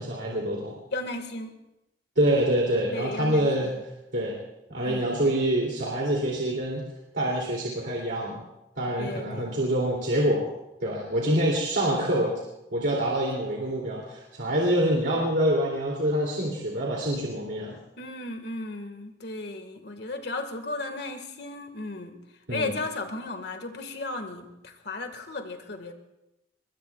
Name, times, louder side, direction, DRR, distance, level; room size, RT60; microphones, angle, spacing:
voice 1, 0.0-0.7 2.2-3.7 4.1-4.4 4.7-6.8 7.1-8.4 8.8-10.5 10.8-12.3 12.7-17.8 22.5-22.7, right 1 dB, 75° right, -3 dB, 2.8 m, -26 dB
voice 2, 0.9-1.6 2.9-3.8 4.8-5.2 9.0-9.6 18.0-22.2 22.5-25.9, left 2 dB, 70° left, 6 dB, 1.8 m, -35 dB
24.0 x 21.0 x 2.4 m, 0.91 s
head